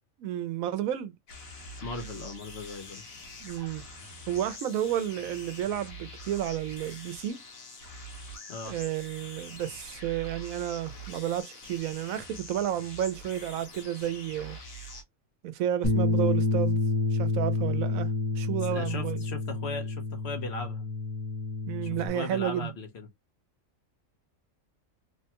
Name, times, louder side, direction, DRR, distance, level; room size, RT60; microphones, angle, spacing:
voice 1, 0.2-1.1 3.4-3.8 4.3-7.4 8.7-14.6 15.4-16.8 17.1-19.2 21.7-22.7, right 11 dB, 85° right, 1.0 m, -31 dB
sound 1, 1.3-15.0, equal, 85° left, 1.5 m, -45 dB
voice 2, 1.8-3.2 8.5-8.7 18.7-20.9 21.8-23.1, left 3 dB, 55° left, 1.0 m, -38 dB
Bass guitar, 15.8-22.1, left 3 dB, 25° left, 0.4 m, -28 dB
3.3 x 2.1 x 2.8 m
omnidirectional pair, 1.4 m